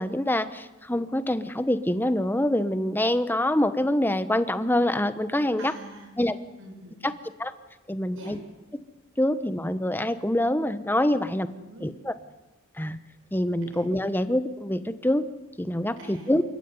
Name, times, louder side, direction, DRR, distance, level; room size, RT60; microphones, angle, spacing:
voice 1, 0.0-5.7 6.2-6.4 7.0-7.1 7.4-7.5 7.9-8.4 9.2-11.5 11.8-12.1 12.8-13.0 13.3-15.2 15.6-16.4, left 1 dB, 10° left, 12 dB, 1.0 m, -25 dB
voice 2, 5.6-6.1 6.6-7.1 8.1-8.3 11.4-11.9 13.7-13.9 16.0-16.3, right 1 dB, 65° right, 2 dB, 7.1 m, -44 dB
28.5 x 15.0 x 9.7 m, 1.1 s
head